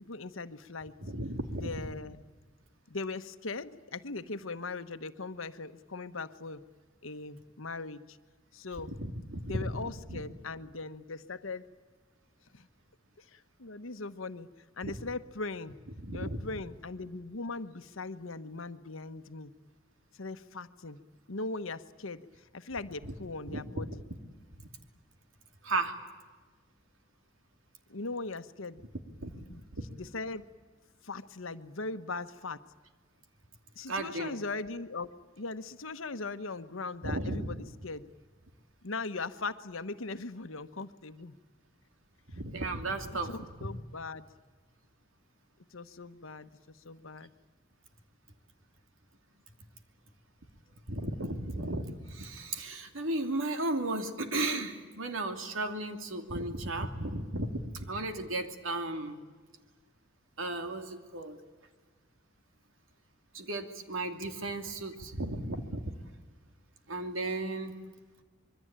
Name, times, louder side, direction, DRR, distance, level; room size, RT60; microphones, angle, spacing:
voice 1, 0.0-0.9 1.6-2.2 2.9-6.6 7.0-8.2 8.5-8.9 9.4-11.7 12.5-12.7 13.2-14.5 14.8-15.7 16.1-19.5 20.2-21.0 21.3-24.0 27.9-28.8 29.5-29.6 30.0-30.5 31.0-32.6 33.7-35.1 35.4-38.1 38.8-41.4 43.1-44.3 45.7-47.3, left 3 dB, 75° left, 11 dB, 1.2 m, -39 dB
voice 2, 1.0-1.7 9.0-10.2 14.8-15.0 16.0-16.4 23.0-23.1 23.5-23.8 25.6-26.0 29.2-29.4 33.9-34.3 37.0-37.5 42.3-43.4 50.9-59.2 60.4-61.4 63.3-65.9 66.9-67.7, right 2 dB, 75° right, 6 dB, 2.7 m, -35 dB
26.0 x 22.5 x 8.9 m, 1.4 s
head